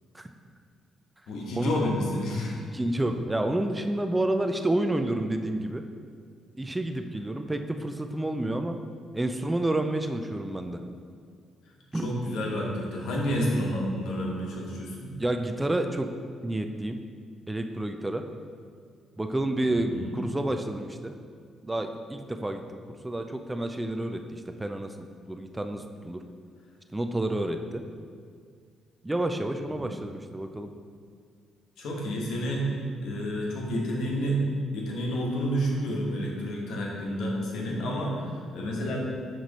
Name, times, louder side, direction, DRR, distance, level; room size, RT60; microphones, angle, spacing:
voice 1, 1.3-2.6 12.0-15.1 19.7-20.2 29.7-29.8 31.8-32.7 33.0-34.4 34.7-39.0, equal, 80° left, -2 dB, 1.2 m, -30 dB
voice 2, 2.7-5.8 6.6-8.8 9.1-10.8 11.9-12.1 15.2-16.1 16.4-17.0 17.5-18.2 19.2-21.1 21.6-26.2 26.9-27.8 29.0-30.7, right 1 dB, 15° right, 6 dB, 0.4 m, -29 dB
6.5 x 3.1 x 5.3 m, 2.1 s
cardioid pair, 90°, 0 cm